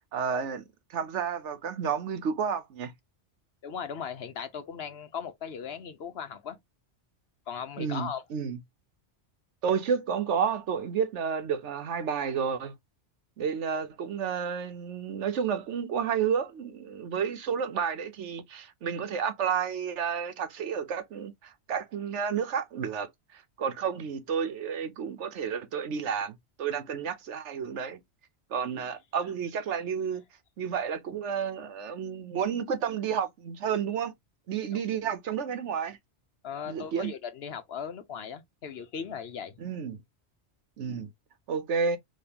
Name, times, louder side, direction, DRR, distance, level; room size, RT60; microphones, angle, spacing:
voice 1, 0.1-2.9 7.8-8.6 9.6-12.7 13.4-28.0 28.5-30.2 30.6-34.1 34.5-36.0 36.7-37.1 39.6-40.0 40.8-41.1 41.5-42.0, right 7 dB, 85° right, 1.2 m, -31 dB
voice 2, 3.6-6.6 7.5-8.2 34.7-34.8 36.4-39.5, left 7 dB, 65° left, 1.0 m, -38 dB
5.3 x 3.1 x 2.9 m
omnidirectional pair, 1.2 m